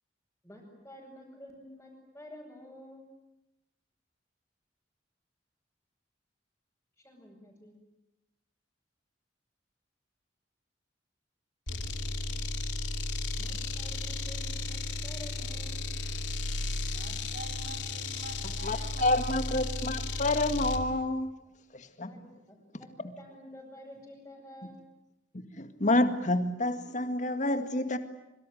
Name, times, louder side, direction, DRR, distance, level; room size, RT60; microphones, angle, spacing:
voice 1, 0.4-3.1 7.0-7.8 12.0-12.5 13.4-15.9 22.0-24.8, left 1 dB, 10° left, 6.8 m, -50 dB
sound 1, 11.7-20.9, left 2 dB, 90° left, 2.7 m, -34 dB
voice 2, 16.8-19.4, right 2 dB, 55° right, 4.8 m, -46 dB
voice 3, 18.6-21.3 21.7-22.1 25.3-28.0, left 2 dB, 45° left, 2.0 m, -28 dB
26.0 x 24.0 x 9.3 m
head